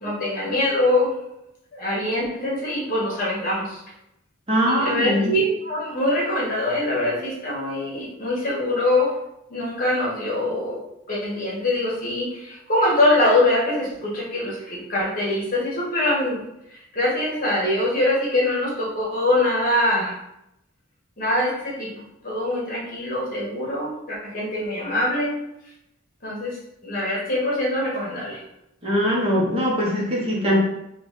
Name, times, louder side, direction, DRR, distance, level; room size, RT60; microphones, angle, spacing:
voice 1, 0.0-1.2 1.7-3.8 4.7-9.1 9.5-10.8 11.1-16.4 16.7-20.1 21.2-25.3 26.2-26.6 26.8-28.4, left 1 dB, 45° left, -4 dB, 1.2 m, -23 dB
voice 2, 4.5-5.3 28.8-30.6, equal, 30° right, -4 dB, 0.9 m, -21 dB
3.9 x 2.4 x 3.7 m, 0.83 s
head